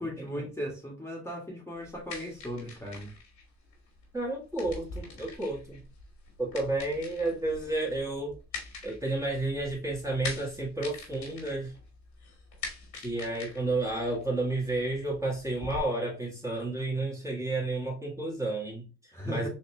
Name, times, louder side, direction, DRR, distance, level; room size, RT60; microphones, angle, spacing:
voice 1, 0.0-3.1 19.1-19.5, equal, 10° left, -2 dB, 1.7 m, -37 dB
sound 1, 1.8-15.8, left 3 dB, 75° left, 1.8 m, -44 dB
voice 2, 4.1-5.8 6.4-8.3 8.8-11.7 12.9-19.5, right 2 dB, 10° right, -3 dB, 1.8 m, -31 dB
4.2 x 2.8 x 2.7 m, 0.31 s
cardioid pair, 70°, 29 cm